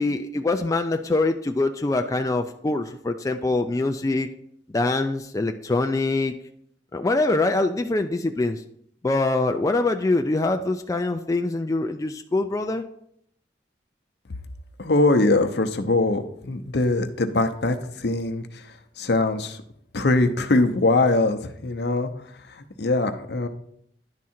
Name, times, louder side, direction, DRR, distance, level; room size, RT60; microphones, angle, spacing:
voice 1, 0.0-4.3 4.7-6.3 6.9-8.6 9.0-12.8, left 2 dB, 20° left, 5 dB, 0.3 m, -24 dB
voice 2, 14.8-19.6 19.9-22.1 22.5-23.5, left 2 dB, 65° left, 7 dB, 0.7 m, -22 dB
10.5 x 3.7 x 4.3 m, 0.70 s
head